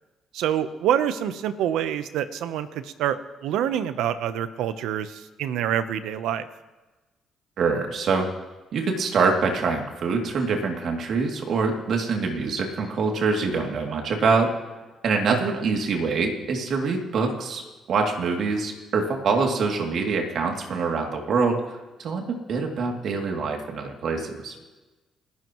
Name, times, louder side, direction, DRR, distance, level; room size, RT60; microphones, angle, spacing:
voice 1, 0.3-6.5 15.3-15.6, right 10 dB, 90° right, 11 dB, 0.9 m, -26 dB
voice 2, 7.6-8.3 8.7-14.5 15.0-24.6, right 4 dB, 65° right, 1 dB, 2.7 m, -25 dB
29.5 x 13.0 x 3.1 m, 1.2 s
cardioid pair, 90°, 0 cm